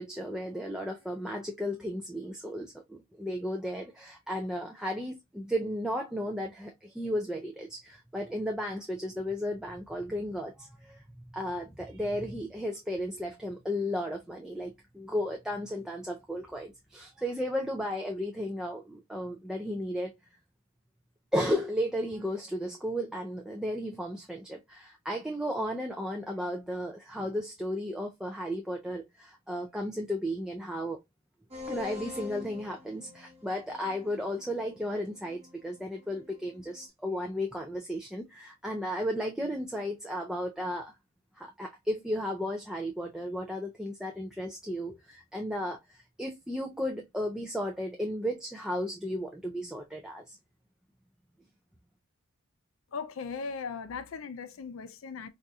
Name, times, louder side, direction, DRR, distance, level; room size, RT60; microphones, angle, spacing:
voice 1, 0.0-11.0 11.3-20.1 21.3-31.0 31.7-40.9 41.4-50.4, equal, 5° right, 0.3 m, -34 dB
sound 1, 31.5-36.9, left 5 dB, 30° right, 0.9 m, -46 dB
voice 2, 52.9-55.3, left 5 dB, 65° left, 0.4 m, -38 dB
4.0 x 2.6 x 2.2 m
head